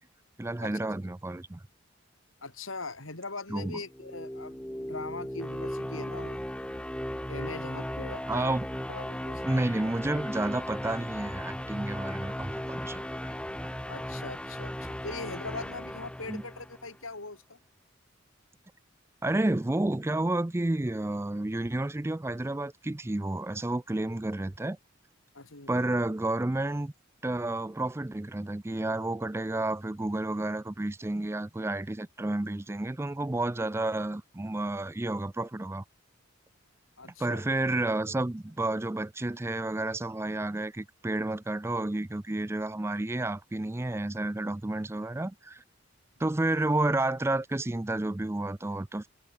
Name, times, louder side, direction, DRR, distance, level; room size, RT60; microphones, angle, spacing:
voice 1, 0.4-1.6 3.5-3.8 8.3-8.7 9.4-13.3 16.3-16.4 19.2-24.8 25.7-26.9 27.2-35.8 37.2-45.6 46.2-49.1, right 2 dB, 10° right, 0.4 m, -31 dB
voice 2, 2.4-6.4 7.3-8.5 8.9-9.6 13.9-17.6 25.3-25.7 37.0-37.4, left 3 dB, 75° left, 4.1 m, -41 dB
sound 1, 3.8-17.0, equal, 5° left, 1.0 m, -37 dB
head